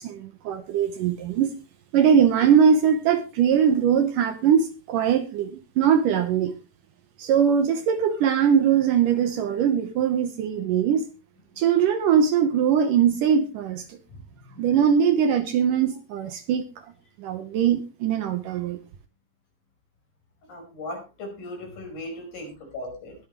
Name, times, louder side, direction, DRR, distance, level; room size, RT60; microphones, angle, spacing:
voice 1, 0.0-1.6 1.9-6.5 7.2-11.0 11.6-14.0 14.6-16.7 17.2-18.8, right 8 dB, 70° right, 2.4 m, -21 dB
voice 2, 14.1-14.7 20.5-23.2, left 1 dB, 55° left, 6.7 m, -38 dB
21.0 x 8.7 x 3.1 m
omnidirectional pair, 4.4 m